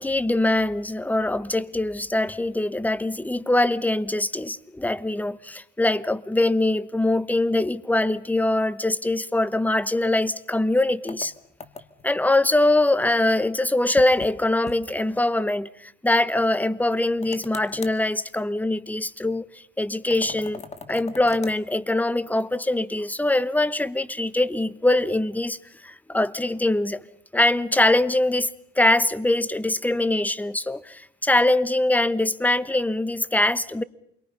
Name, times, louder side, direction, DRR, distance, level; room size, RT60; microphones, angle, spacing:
voice 1, 0.0-11.3 12.0-19.4 19.8-20.6 20.9-25.6 25.8-27.0 27.3-28.5 28.8-33.8, left 2 dB, 10° left, 1.0 m, -23 dB
sound 1, 11.1-12.1 14.0-14.4 14.7-14.8 15.1-15.2 17.2-18.0 20.1-21.6, left 4 dB, 35° left, 1.9 m, -40 dB
28.5 x 23.0 x 5.6 m
cardioid pair, 90°, 20 cm